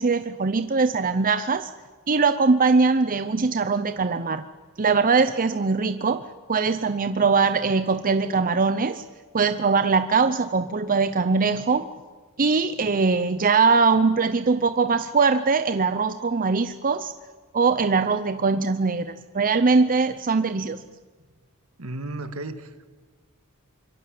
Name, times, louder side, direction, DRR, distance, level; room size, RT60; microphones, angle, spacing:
voice 1, 0.0-1.7 2.1-4.4 4.8-6.2 6.5-9.0 9.3-11.9 12.4-17.1 17.5-20.8, right 4 dB, 40° right, 10 dB, 0.7 m, -21 dB
voice 2, 21.8-22.9, right 2 dB, 70° right, 9 dB, 1.9 m, -34 dB
25.0 x 22.5 x 7.7 m, 1.4 s
head